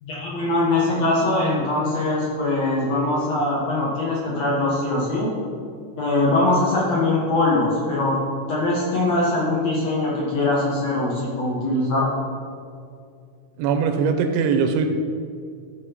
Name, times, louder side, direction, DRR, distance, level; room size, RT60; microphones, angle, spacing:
voice 1, 0.0-5.3 6.0-8.2 8.5-12.1, left 2 dB, 50° left, -6 dB, 2.3 m, -22 dB
voice 2, 13.6-15.0, right 5 dB, 85° right, 6 dB, 2.7 m, -21 dB
13.0 x 4.8 x 5.8 m, 2.3 s
omnidirectional pair, 4.6 m